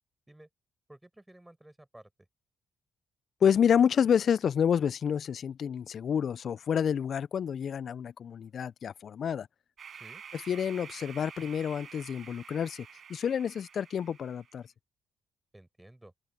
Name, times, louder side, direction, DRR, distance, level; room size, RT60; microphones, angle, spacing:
voice 1, 0.9-2.1 9.9-10.2 15.5-16.1, right 1 dB, 10° right, 6.6 m, -53 dB
voice 2, 3.4-9.5 10.3-14.6, left 8 dB, 55° left, 0.3 m, -28 dB
sound 1, 9.8-14.6, right 7 dB, 55° right, 7.0 m, -49 dB
open air
cardioid pair, 90°, 0 cm